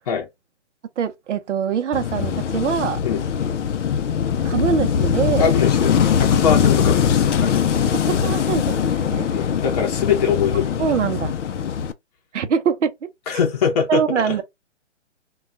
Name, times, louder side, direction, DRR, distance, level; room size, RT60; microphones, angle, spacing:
voice 1, 1.0-3.0 4.4-5.5 7.9-9.3 10.8-11.4 12.3-12.9 13.3-13.4 13.9-14.4, right 7 dB, 70° right, 0.6 m, -23 dB
Wind / Waves surf, 1.9-11.9, left 7 dB, 75° left, 0.5 m, -21 dB
voice 2, 5.4-7.6 9.3-10.8 11.6-11.8 13.3-14.0 14.3-14.4, left 7 dB, 35° left, 0.7 m, -22 dB
2.3 x 2.3 x 3.7 m
hypercardioid pair, 155°, 36 cm